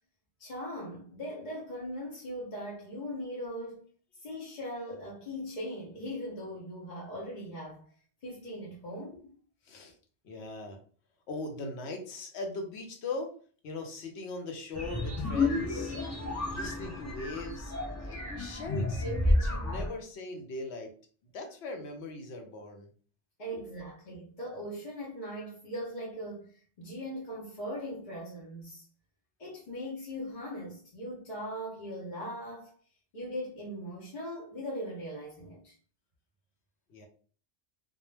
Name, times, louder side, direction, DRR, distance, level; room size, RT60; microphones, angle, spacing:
voice 1, 0.4-3.8 4.2-7.9 8.2-9.3 23.4-28.8 29.4-32.8 33.1-35.7, equal, 45° left, 0.7 m, -40 dB
voice 2, 9.6-10.0 10.2-10.8 11.3-13.4 13.6-16.0 16.5-20.9 21.3-22.9 23.5-23.6 36.9-37.1, left 2 dB, 80° left, 0.9 m, -40 dB
sound 1, 14.7-19.9, left 2 dB, 25° left, 0.4 m, -31 dB
2.3 x 2.1 x 3.1 m
omnidirectional pair, 1.1 m